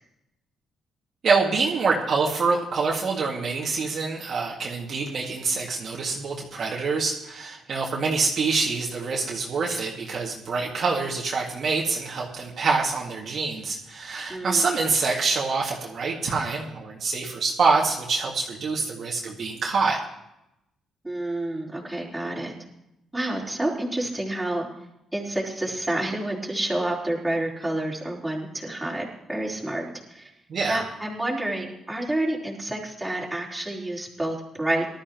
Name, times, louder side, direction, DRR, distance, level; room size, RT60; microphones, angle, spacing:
voice 1, 1.2-20.0 30.5-30.8, right 4 dB, 55° right, -2 dB, 2.2 m, -26 dB
voice 2, 14.3-14.7 21.0-22.5 23.1-24.7 25.1-30.3 30.7-34.9, right 1 dB, 10° right, -5 dB, 4.1 m, -29 dB
19.0 x 12.5 x 3.1 m, 0.86 s
cardioid pair, 90°, 0 cm